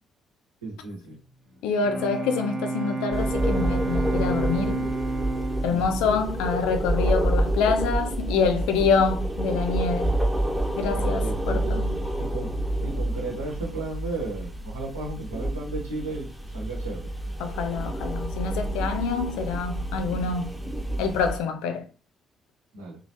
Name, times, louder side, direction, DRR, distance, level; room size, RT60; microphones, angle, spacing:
voice 1, 0.6-1.2 5.7-6.2 10.9-11.8 12.2-12.5 12.8-16.3 16.5-17.1 22.7-23.0, right 3 dB, 80° right, 1.2 m, -34 dB
Bowed string instrument, 1.5-7.3, right 3 dB, 55° right, 1.1 m, -31 dB
voice 2, 1.6-4.9 5.6-10.1 10.8-12.0 17.4-20.5 21.0-21.9, left 5 dB, 65° left, 0.4 m, -26 dB
sound 1, 3.1-21.4, right 1 dB, 5° right, 1.1 m, -28 dB
3.1 x 2.3 x 2.7 m
figure-of-eight pair, 45°, 0 cm